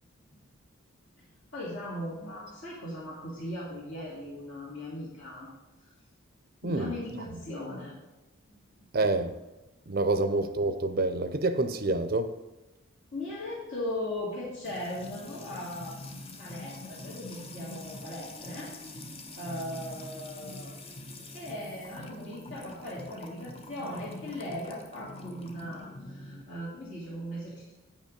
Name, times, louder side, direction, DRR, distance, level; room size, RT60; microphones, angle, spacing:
voice 1, 1.5-5.5 6.6-7.9 8.5-8.6 13.1-16.0 16.4-18.7 19.4-21.0 21.3-27.7, left 1 dB, 65° left, 2.3 m, -38 dB
voice 2, 6.6-6.9 8.9-9.3 9.9-12.3, right 2 dB, 45° right, 0.5 m, -27 dB
Music / Water tap faucet / Trickle dribble, 14.6-26.4, left 1 dB, 25° left, 0.6 m, -44 dB
8.8 x 5.3 x 5.1 m
head